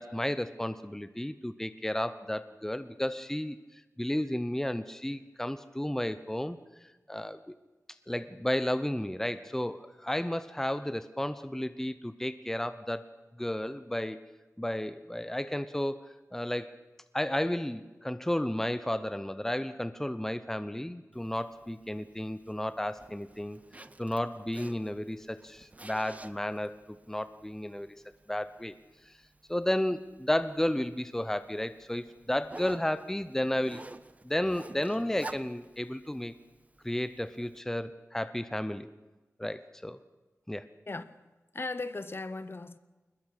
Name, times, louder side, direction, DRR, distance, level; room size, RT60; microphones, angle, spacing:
voice 1, 0.0-7.6 8.1-13.1 13.4-14.2 14.6-16.8 17.1-26.8 27.1-27.9 28.3-28.7 29.1-29.2 29.5-33.8 34.2-36.3 36.8-38.9 39.4-40.0 40.5-40.7, left 1 dB, 5° left, 0.7 m, -33 dB
Zipper (clothing), 21.1-37.6, right 2 dB, 25° right, 0.7 m, -51 dB
voice 2, 40.9-41.2 41.5-42.8, left 3 dB, 45° left, 0.9 m, -37 dB
22.0 x 20.5 x 6.6 m
wide cardioid pair, 75°, 6 cm